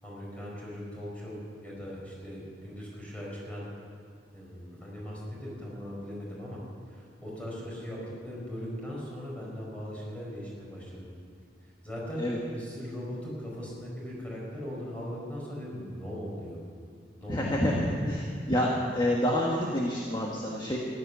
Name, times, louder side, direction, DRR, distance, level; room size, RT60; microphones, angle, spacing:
voice 1, 0.0-3.7 4.3-6.6 6.9-11.1 11.8-16.6 17.2-17.7, equal, 10° left, -5 dB, 4.7 m, -39 dB
voice 2, 17.3-20.8, left 1 dB, 25° left, -2 dB, 1.4 m, -28 dB
15.0 x 11.5 x 6.9 m, 2.2 s
head